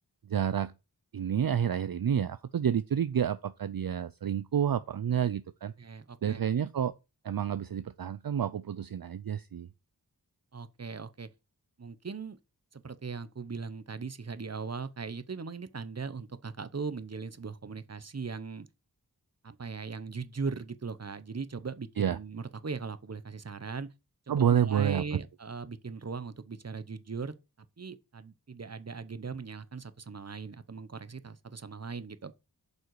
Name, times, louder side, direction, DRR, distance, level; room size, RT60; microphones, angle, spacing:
voice 1, 0.3-0.7 1.1-5.7 6.2-6.9 7.2-9.7 22.0-22.2 24.3-25.0, right 9 dB, 60° right, 0.5 m, -29 dB
voice 2, 5.8-6.4 10.5-11.3 11.8-12.4 12.7-18.7 19.4-23.9 24.3-27.3 27.8-32.3, right 5 dB, 40° right, 0.8 m, -39 dB
7.8 x 5.5 x 4.7 m
wide cardioid pair, 50°, 40 cm